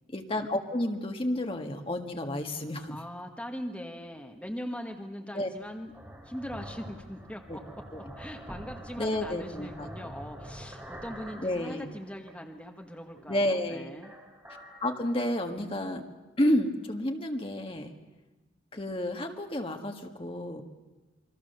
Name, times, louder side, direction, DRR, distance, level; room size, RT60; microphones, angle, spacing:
voice 1, 0.1-3.0 5.3-5.5 7.5-7.6 7.9-8.0 9.0-9.9 11.4-11.9 13.3-13.9 14.5-16.0 16.4-17.9 18.7-20.6, left 1 dB, 30° left, 4 dB, 1.7 m, -30 dB
voice 2, 2.9-5.9 6.2-7.6 8.2-14.1, equal, 5° left, 2 dB, 1.4 m, -41 dB
sound 1, 5.6-12.4 12.8-13.6 13.9-15.7, equal, 15° right, 4.4 m, -46 dB
28.0 x 23.5 x 6.8 m, 1.2 s
head